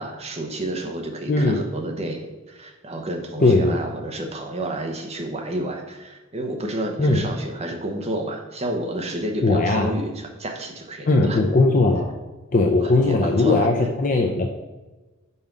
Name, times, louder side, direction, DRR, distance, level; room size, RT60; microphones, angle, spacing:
voice 1, 0.0-11.4 12.8-13.7, right 1 dB, 30° right, 3 dB, 1.0 m, -30 dB
voice 2, 1.3-1.6 3.4-3.8 7.0-7.2 9.4-9.9 11.1-12.1 12.5-14.5, left 2 dB, 40° left, 2 dB, 0.6 m, -19 dB
5.6 x 5.3 x 6.0 m, 1.2 s
head